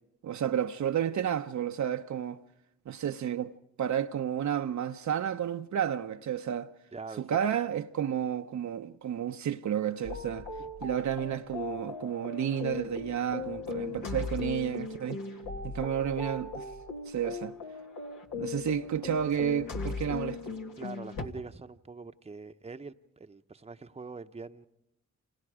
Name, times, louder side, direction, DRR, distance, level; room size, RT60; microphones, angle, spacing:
voice 1, 0.2-2.4 2.9-3.5 3.8-6.7 7.2-10.5 10.8-15.2 15.6-16.7 17.1-17.5 18.3-20.6, right 9 dB, 55° right, 0.8 m, -31 dB
voice 2, 6.9-7.4 10.6-10.7 20.8-24.7, right 4 dB, 20° right, 0.9 m, -44 dB
sound 1, 10.0-21.3, left 4 dB, 70° left, 1.8 m, -38 dB
29.0 x 26.5 x 5.0 m
supercardioid pair, 45°, 33 cm